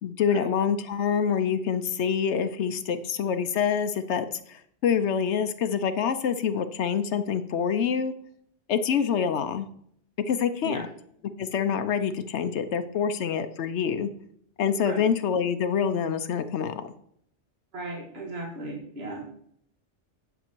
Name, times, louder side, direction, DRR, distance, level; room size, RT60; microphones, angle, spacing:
voice 1, 0.0-8.1 8.7-9.7 10.3-10.8 11.4-14.1 14.6-16.9, left 7 dB, 70° left, 10 dB, 0.9 m, -26 dB
voice 2, 17.7-19.4, right 2 dB, 60° right, -1 dB, 2.0 m, -36 dB
10.5 x 6.5 x 4.5 m, 0.67 s
omnidirectional pair, 1.2 m